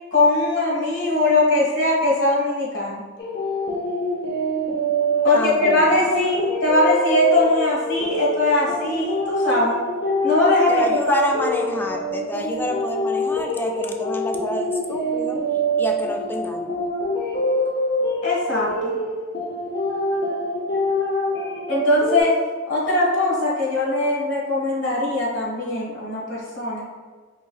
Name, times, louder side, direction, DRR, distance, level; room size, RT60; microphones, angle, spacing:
voice 1, 0.1-3.0 5.2-9.8 10.2-11.2 18.2-19.0 21.7-22.3 22.7-26.8, left 2 dB, 75° left, -5 dB, 1.5 m, -20 dB
sound 1, 3.2-22.2, equal, 60° left, 0.6 m, -25 dB
voice 2, 5.3-6.0 10.7-15.4 15.8-16.9, left 1 dB, 10° left, 2 dB, 0.3 m, -28 dB
4.7 x 3.1 x 2.3 m, 1.5 s
head